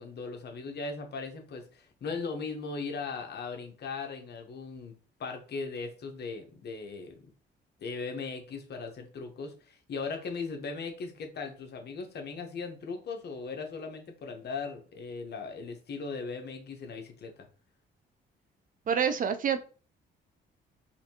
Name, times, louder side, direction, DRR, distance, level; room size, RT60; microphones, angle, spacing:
voice 1, 0.0-7.2 7.8-17.5, left 4 dB, 55° left, 1.0 m, -38 dB
voice 2, 18.9-19.6, right 7 dB, 45° right, 0.4 m, -27 dB
4.3 x 2.6 x 2.8 m
cardioid pair, 90°, 20 cm